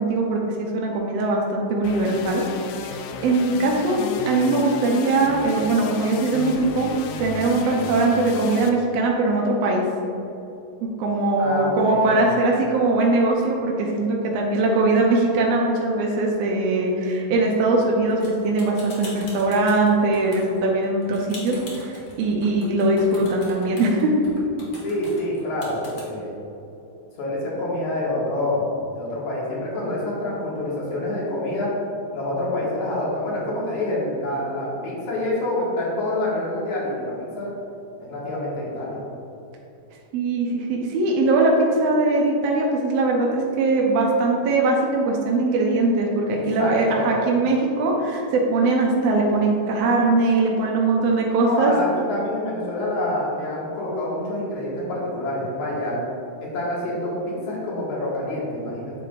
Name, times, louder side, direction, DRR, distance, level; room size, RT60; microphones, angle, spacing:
voice 1, 0.0-2.4 2.8-6.9 7.2-9.8 10.8-24.4 40.1-51.7, right 2 dB, 75° right, -1 dB, 1.5 m, -21 dB
sound 1, 1.8-8.7, left 5 dB, 80° left, 2.0 m, -34 dB
voice 2, 11.4-12.3 24.8-26.3 27.2-31.8 32.1-37.5 38.0-39.0 46.3-47.1 51.2-56.0 56.4-58.9, left 1 dB, 65° left, -6 dB, 3.2 m, -27 dB
sound 2, 18.1-26.0, left 2 dB, 40° left, 1.9 m, -41 dB
9.4 x 7.4 x 2.5 m, 2.8 s
omnidirectional pair, 3.9 m